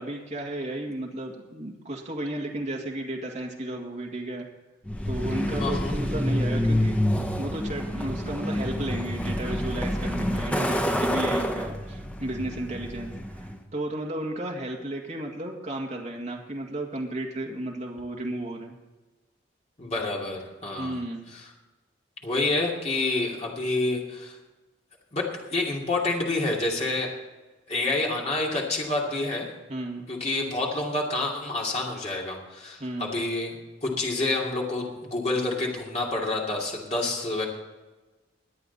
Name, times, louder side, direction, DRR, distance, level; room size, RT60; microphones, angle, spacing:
voice 1, 0.0-4.5 5.1-7.0 7.4-18.8 20.8-21.3 29.7-30.1 32.8-33.2, right 1 dB, 35° right, 0 dB, 2.0 m, -33 dB
Truck, 4.9-13.6, equal, 5° left, 0.8 m, -28 dB
voice 2, 5.6-6.0 19.8-21.0 21.3-21.5 22.2-24.4 25.1-27.1 27.7-29.5 30.1-33.5 33.8-37.5, left 2 dB, 35° left, -2 dB, 2.6 m, -28 dB
21.5 x 8.3 x 4.1 m, 1.2 s
head